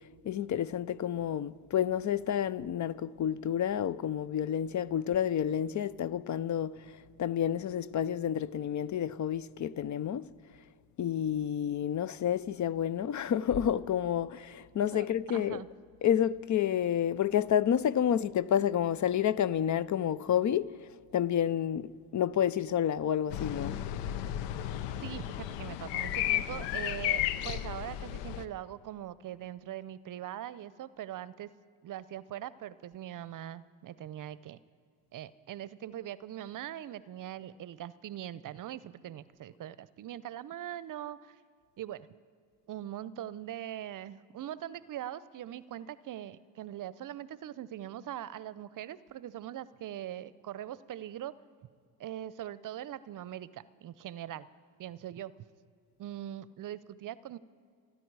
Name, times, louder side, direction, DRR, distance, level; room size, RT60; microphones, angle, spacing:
voice 1, 0.2-10.3 11.0-15.6 16.0-20.8 21.1-23.7, left 9 dB, 45° left, 0.7 m, -30 dB
voice 2, 15.3-15.7 25.0-31.5 31.8-34.6 35.1-41.4 41.8-42.1 42.7-51.3 52.0-54.5 54.8-55.3 56.0-57.4, right 11 dB, 50° right, 0.7 m, -41 dB
sound 1, 23.3-28.4, left 12 dB, 75° left, 0.9 m, -33 dB
28.5 x 10.5 x 4.8 m
hypercardioid pair, 60°, 43 cm